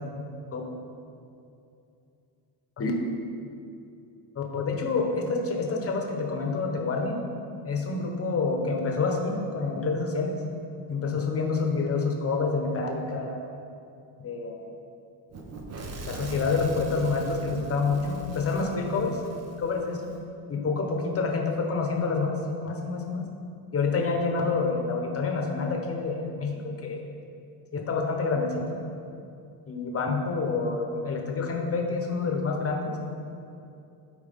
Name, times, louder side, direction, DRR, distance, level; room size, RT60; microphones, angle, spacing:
voice 1, 4.3-7.2 7.6-10.4 10.9-13.5 14.2-14.7 16.0-19.2 19.6-20.0 20.5-22.3 22.6-23.2 23.7-27.1 27.7-28.8 29.7-33.0, left 4 dB, 30° left, 1 dB, 1.1 m, -28 dB
Fire / Explosion, 15.3-20.2, right 2 dB, 30° right, 0.9 m, -40 dB
12.5 x 4.6 x 3.7 m, 2.6 s
cardioid pair, 135°, 49 cm